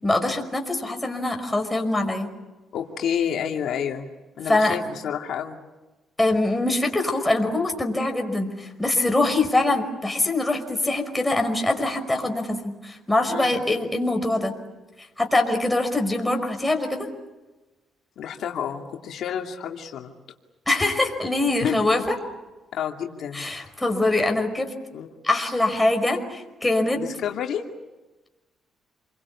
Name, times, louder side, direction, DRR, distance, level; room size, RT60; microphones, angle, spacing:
voice 1, 0.0-2.3 4.5-4.8 6.2-12.6 12.8-14.5 15.2-17.1 20.7-22.0 23.3-24.7 25.2-27.0, left 2 dB, 10° left, 4 dB, 5.4 m, -23 dB
voice 2, 2.7-4.1 4.4-5.6 13.3-13.6 18.2-20.1 21.6-22.1 22.7-23.5 24.9-25.1 26.9-27.6, left 8 dB, 70° left, 2 dB, 2.5 m, -29 dB
29.0 x 23.0 x 8.5 m, 1.1 s
cardioid pair, 90°, 0 cm